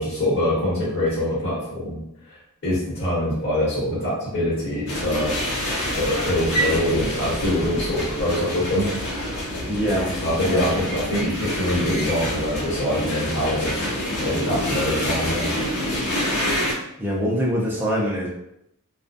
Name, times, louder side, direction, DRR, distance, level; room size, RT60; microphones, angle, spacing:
voice 1, 0.0-2.0 2.6-5.3 5.9-8.9 10.2-13.7 14.2-15.5, left 1 dB, 55° left, -10 dB, 1.3 m, -24 dB
sound 1, 4.9-16.7, equal, 80° left, 0.7 m, -27 dB
voice 2, 9.7-10.1 10.4-10.7 17.0-18.3, equal, 10° right, -6 dB, 0.5 m, -24 dB
2.3 x 2.3 x 2.6 m, 0.79 s
head